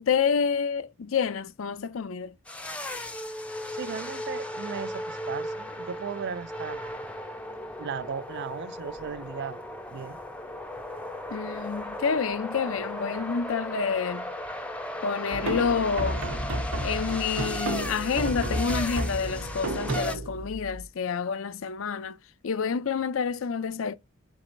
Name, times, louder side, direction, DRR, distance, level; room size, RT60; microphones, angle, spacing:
voice 1, 0.0-2.3 11.3-14.3 15.0-16.2 16.8-22.2 22.4-24.0, left 6 dB, 70° left, 0.5 m, -28 dB
sound 1, 2.5-20.2, left 1 dB, 5° left, 0.6 m, -36 dB
voice 2, 3.7-6.8 7.8-9.6 9.9-10.2, right 6 dB, 55° right, 0.4 m, -36 dB
sound 2, 15.3-20.8, right 1 dB, 75° right, 1.2 m, -32 dB
4.6 x 4.1 x 2.5 m
head